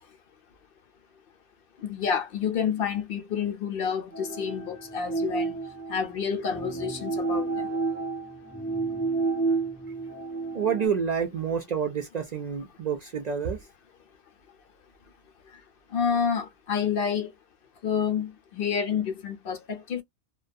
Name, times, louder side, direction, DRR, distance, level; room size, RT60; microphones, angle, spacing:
voice 1, 1.8-5.5 5.9-7.7 15.9-17.3 17.8-20.0, left 7 dB, 60° left, 0.8 m, -29 dB
sound 1, 4.1-10.9, right 4 dB, 20° left, 0.5 m, -30 dB
voice 2, 10.5-13.6, right 7 dB, 55° right, 0.5 m, -28 dB
2.3 x 2.2 x 2.4 m
omnidirectional pair, 1.1 m